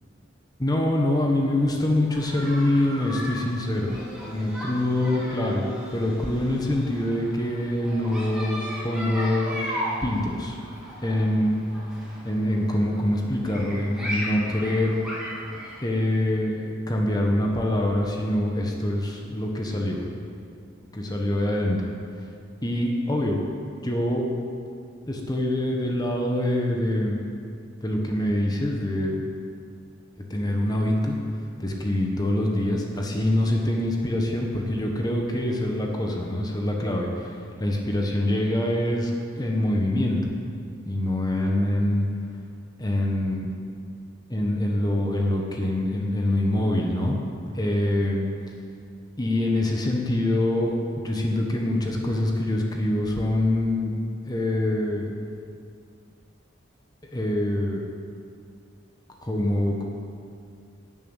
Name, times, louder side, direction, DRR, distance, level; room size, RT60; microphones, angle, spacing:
voice 1, 0.6-4.0 4.2-9.6 10.0-10.6 11.0-11.6 12.2-15.0 15.8-20.0 20.9-22.0 22.6-23.4 23.8-24.3 25.1-27.2 27.8-29.2 30.3-31.2 31.6-37.3 37.6-40.2 40.8-42.1 42.8-43.5 44.3-47.2 47.5-48.3 49.2-55.1 57.1-57.8 59.2-59.8, left 1 dB, 20° left, 0 dB, 1.3 m, -25 dB
sound 1, 2.1-15.8, equal, 5° right, 3.2 m, -36 dB
11.5 x 7.6 x 8.2 m, 2.3 s
head